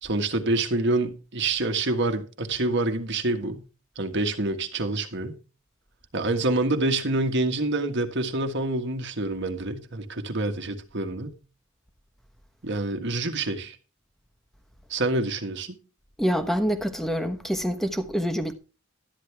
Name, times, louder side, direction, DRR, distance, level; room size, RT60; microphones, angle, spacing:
voice 1, 0.0-3.6 3.9-5.4 6.1-11.4 12.6-13.8 14.9-15.8, right 2 dB, 55° right, 1.5 m, -27 dB
voice 2, 16.2-18.5, equal, ahead, 1.1 m, -26 dB
12.5 x 9.8 x 3.5 m
head